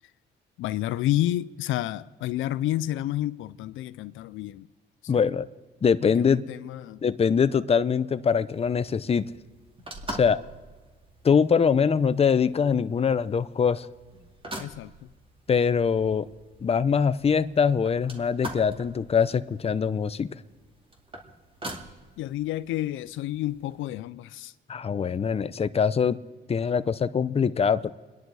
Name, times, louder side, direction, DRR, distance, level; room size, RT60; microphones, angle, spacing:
voice 1, 0.6-4.7 6.0-7.0 14.6-14.9 22.2-24.5, left 14 dB, 85° left, 0.5 m, -30 dB
voice 2, 5.1-5.5 5.8-6.4 7.0-9.3 10.1-10.4 11.2-13.9 15.5-16.3 16.6-20.4 24.7-26.2 26.5-27.9, left 6 dB, 30° left, 0.6 m, -23 dB
sound 1, 8.5-23.9, right 1 dB, 25° right, 2.3 m, -44 dB
28.0 x 10.5 x 4.8 m
cardioid pair, 90°, 20 cm